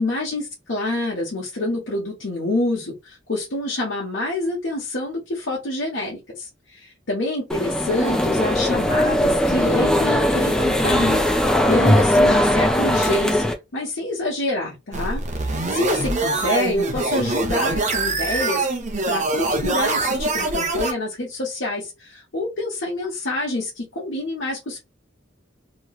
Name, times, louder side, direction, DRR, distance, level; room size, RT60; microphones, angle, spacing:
voice 1, 0.0-18.7 19.1-24.8, left 2 dB, 75° left, 1.1 m, -27 dB
sound 1, 7.5-13.5, left 1 dB, 5° left, 0.5 m, -19 dB
sound 2, 14.9-20.9, right 3 dB, 40° right, 0.8 m, -24 dB
3.0 x 3.0 x 2.3 m
head